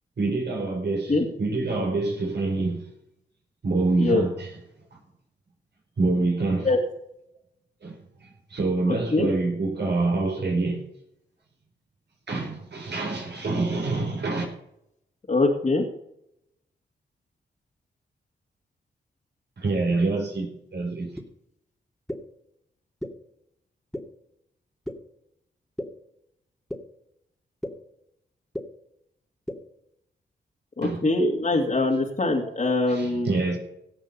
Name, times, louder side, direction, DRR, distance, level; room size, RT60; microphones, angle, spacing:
voice 1, 0.2-2.9 3.6-4.6 6.0-6.7 7.8-10.8 12.3-14.4 19.6-21.1 30.8-31.2 32.4-32.5 32.9-33.6, right 3 dB, 60° right, 4.6 m, -26 dB
voice 2, 15.3-15.8 30.8-33.3, left 2 dB, 40° left, 2.5 m, -23 dB
sound 1, 21.2-21.3 22.1-22.2 23.0-23.1 23.9-24.0 24.8-24.9 25.8-25.9 26.7-26.8 27.6-27.7 28.5-28.6 29.5-29.6, equal, ahead, 2.5 m, -31 dB
17.0 x 6.2 x 5.6 m
supercardioid pair, 40°, 19 cm